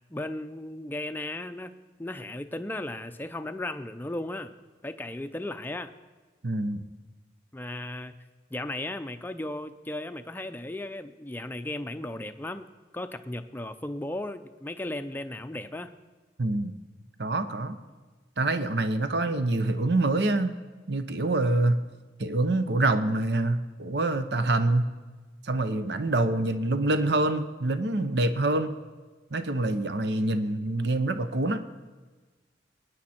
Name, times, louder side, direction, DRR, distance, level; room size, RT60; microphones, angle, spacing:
voice 1, 0.1-4.5 4.8-5.9 7.5-8.1 8.5-15.9, left 1 dB, 10° left, 8 dB, 0.5 m, -36 dB
voice 2, 6.4-6.8 16.4-16.7 17.2-17.8 18.4-20.5 20.9-21.8 22.2-24.9 25.4-28.7 29.3-31.6, right 2 dB, 60° right, 10 dB, 0.8 m, -26 dB
22.0 x 9.9 x 4.4 m, 1.3 s
head